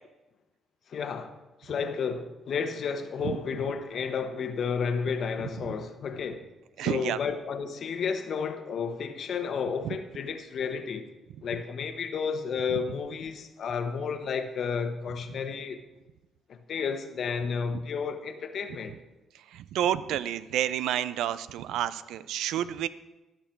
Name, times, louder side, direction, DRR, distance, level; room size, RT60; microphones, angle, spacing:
voice 1, 0.9-1.3 1.6-6.5 6.8-11.1 11.4-15.8 16.5-18.9, left 6 dB, 60° left, 1.1 m, -32 dB
voice 2, 6.8-7.2 19.5-22.9, right 11 dB, 85° right, 0.4 m, -29 dB
16.5 x 6.8 x 4.6 m
cardioid pair, 90°, 0 cm